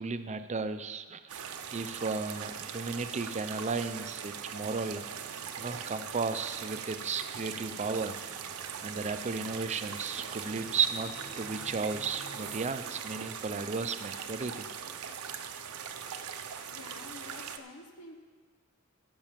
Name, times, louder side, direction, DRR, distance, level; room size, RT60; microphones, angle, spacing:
voice 1, 0.0-1.4 1.7-5.1 5.6-8.2 8.8-14.7, right 4 dB, 30° right, 10 dB, 0.5 m, -34 dB
sound 1, 1.3-17.6, right 7 dB, 70° right, 0.7 m, -41 dB
sound 2, 7.4-12.6, right 1 dB, 10° right, 0.9 m, -54 dB
voice 2, 16.7-18.1, left 3 dB, 85° left, 4 dB, 1.4 m, -49 dB
15.5 x 5.6 x 7.4 m, 1.4 s
head